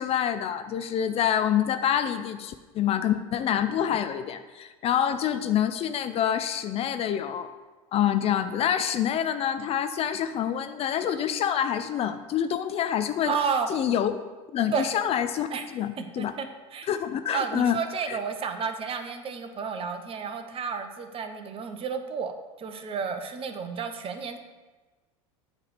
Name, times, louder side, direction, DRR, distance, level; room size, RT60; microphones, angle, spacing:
voice 1, 0.0-7.5 7.9-13.3 13.7-14.2 14.5-16.3 16.9-17.8 18.1-18.2, left 9 dB, 35° left, 10 dB, 0.5 m, -27 dB
voice 2, 13.3-13.7 14.7-14.9 15.5-15.6 16.0-16.9 17.3-22.3 22.6-24.4, right 6 dB, 35° right, 7 dB, 0.8 m, -31 dB
8.3 x 3.3 x 6.5 m, 1.3 s
hypercardioid pair, 80°, 17 cm